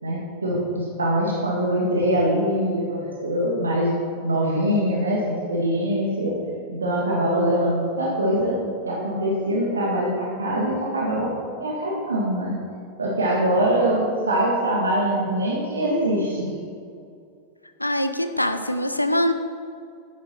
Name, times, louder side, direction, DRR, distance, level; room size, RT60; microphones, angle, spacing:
voice 1, 0.0-6.3 6.7-8.6 8.9-11.3 11.6-12.6 13.0-16.5, right 1 dB, 75° right, -4 dB, 2.2 m, -23 dB
voice 2, 17.8-19.3, left 1 dB, 85° left, 9 dB, 0.7 m, -23 dB
11.5 x 9.8 x 4.6 m, 2.4 s
figure-of-eight pair, 90°, 0 cm